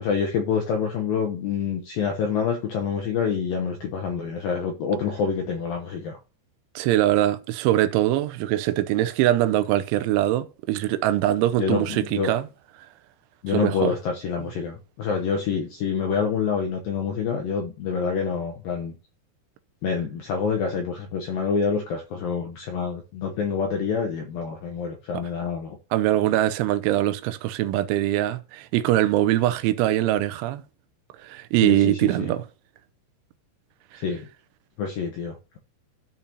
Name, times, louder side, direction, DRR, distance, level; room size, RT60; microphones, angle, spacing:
voice 1, 0.0-6.2 11.6-12.3 13.4-19.0 19.8-25.8 31.6-32.3 33.9-34.2 34.8-35.6, left 6 dB, 80° left, 2.1 m, -27 dB
voice 2, 6.8-12.4 13.5-13.9 25.9-30.6 31.2-32.5, right 14 dB, 85° right, 3.0 m, -22 dB
14.0 x 5.3 x 2.8 m
omnidirectional pair, 5.5 m